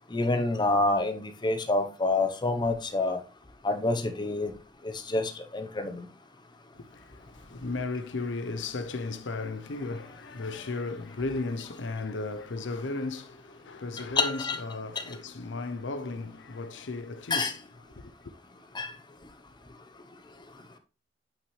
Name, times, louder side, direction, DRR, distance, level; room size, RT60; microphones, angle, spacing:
voice 1, 0.1-3.2 3.6-4.5 4.8-6.1 14.2-14.6 15.0-15.1 17.3-17.5 18.7-18.9, left 2 dB, 25° left, 0.8 m, -27 dB
voice 2, 6.8-17.6 18.0-18.1, left 3 dB, 80° left, 0.7 m, -35 dB
8.4 x 5.8 x 3.2 m
head